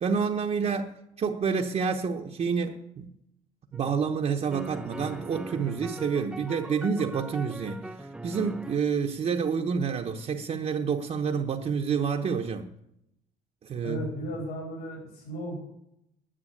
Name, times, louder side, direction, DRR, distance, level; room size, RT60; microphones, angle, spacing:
voice 1, 0.0-3.1 3.7-12.7 13.6-14.0, right 6 dB, 40° right, 0.9 m, -28 dB
sound 1, 3.7-3.8 4.5-8.8, right 2 dB, 5° right, 0.4 m, -40 dB
voice 2, 13.8-15.6, right 1 dB, 75° left, 4.9 m, -35 dB
10.0 x 7.5 x 9.5 m
cardioid pair, 110°, 17 cm